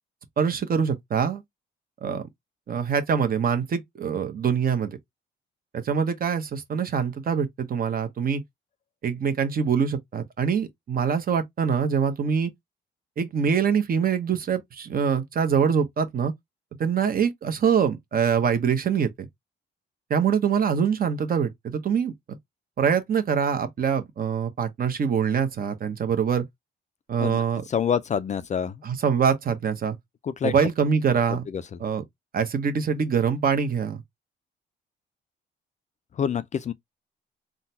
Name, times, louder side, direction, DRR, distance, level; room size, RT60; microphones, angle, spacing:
voice 1, 0.4-1.4 2.0-2.3 2.7-5.0 5.7-8.4 9.0-12.5 13.2-16.3 16.8-19.3 20.1-22.4 22.8-26.4 27.1-27.6 28.8-30.0 30.4-31.4 31.8-32.0 32.3-34.0, right 7 dB, 45° right, 0.9 m, -24 dB
voice 2, 27.7-28.7 30.2-30.5 31.5-31.6 36.2-36.7, left 7 dB, 35° left, 0.4 m, -26 dB
3.7 x 2.2 x 2.8 m
cardioid pair, 90°, 20 cm